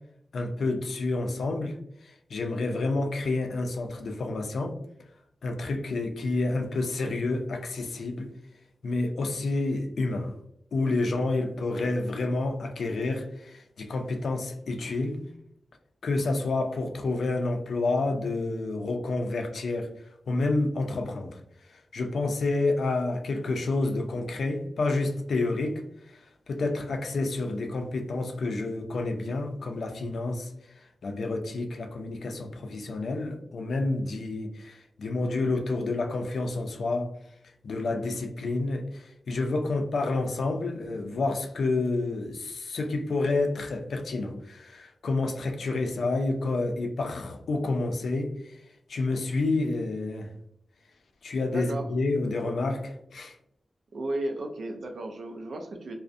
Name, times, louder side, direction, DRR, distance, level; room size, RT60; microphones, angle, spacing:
voice 1, 0.3-1.7 2.0-4.8 5.4-8.3 8.8-10.3 10.7-15.2 16.0-19.9 20.3-21.4 21.7-25.8 26.5-30.5 31.0-37.1 37.6-48.6 48.9-50.3 51.2-53.4, left 2 dB, 85° left, 4 dB, 0.4 m, -29 dB
voice 2, 51.5-51.8 53.9-55.9, right 1 dB, 75° right, 3 dB, 0.3 m, -34 dB
2.4 x 2.0 x 2.5 m, 0.74 s
wide cardioid pair, 130°, 0 cm